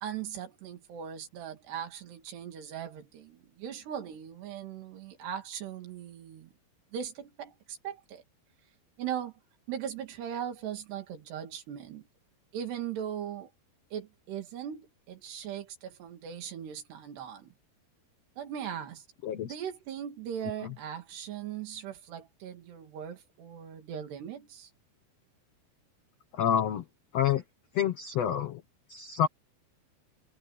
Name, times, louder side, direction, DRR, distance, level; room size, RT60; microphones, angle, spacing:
voice 1, 0.0-6.5 6.9-8.2 9.0-9.3 9.7-12.1 12.5-13.5 13.9-17.5 18.4-19.0 19.4-24.7, right 9 dB, 90° right, 4.6 m, -39 dB
voice 2, 19.2-19.5 20.6-20.7 26.3-26.8 27.1-27.4 27.7-28.6 28.9-29.3, left 9 dB, 80° left, 1.4 m, -28 dB
omnidirectional pair, 4.6 m